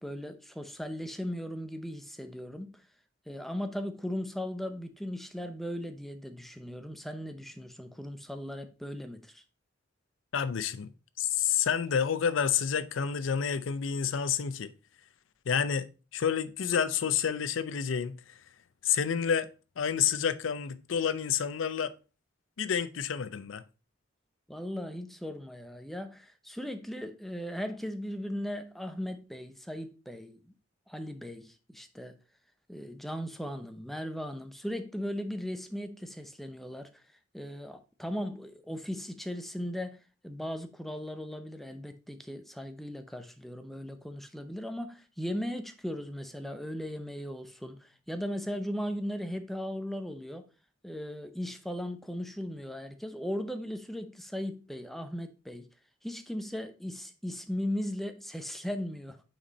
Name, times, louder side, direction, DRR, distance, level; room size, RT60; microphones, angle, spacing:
voice 1, 0.0-2.8 3.3-9.4 24.5-30.5 30.9-32.2 32.7-37.0 37.3-50.5 50.8-55.7 56.0-59.2, equal, ahead, 0.6 m, -37 dB
voice 2, 10.3-10.9 11.2-14.7 15.5-18.4 18.8-19.5 19.8-21.9 22.6-23.6, left 7 dB, 75° left, 0.5 m, -29 dB
5.9 x 4.3 x 4.0 m
head